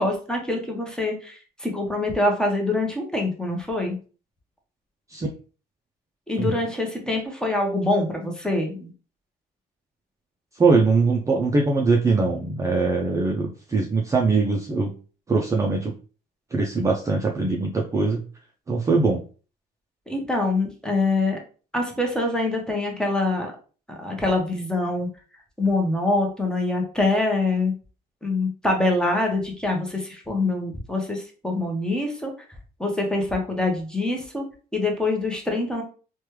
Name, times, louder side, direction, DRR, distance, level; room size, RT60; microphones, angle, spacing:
voice 1, 0.0-4.0 6.3-8.9 20.1-21.4 21.7-23.5 24.0-25.1 25.6-27.7 28.2-32.3 32.8-34.4 34.7-35.8, left 2 dB, 5° left, 1 dB, 0.8 m, -25 dB
voice 2, 10.6-14.9 15.3-15.9 16.5-18.2 18.7-19.2, right 3 dB, 20° right, 0 dB, 0.4 m, -22 dB
3.1 x 2.2 x 3.0 m, 0.38 s
cardioid pair, 110°, 17 cm